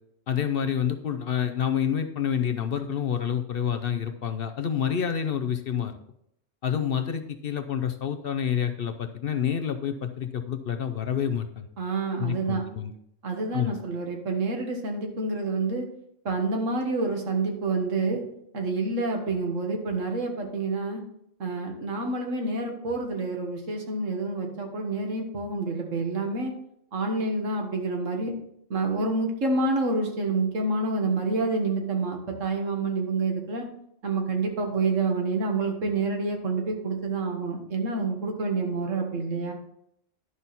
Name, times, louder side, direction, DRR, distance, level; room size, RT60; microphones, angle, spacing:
voice 1, 0.3-6.0 6.6-11.7 12.2-12.9 13.5-13.8, left 8 dB, 55° left, 7 dB, 0.8 m, -28 dB
voice 2, 11.8-12.6 13.2-15.9 16.3-18.2 18.5-21.0 21.4-26.5 26.9-28.3 28.7-33.7 34.0-39.5, right 3 dB, 80° right, 2 dB, 1.8 m, -28 dB
11.0 x 5.9 x 4.1 m, 0.74 s
omnidirectional pair, 1.3 m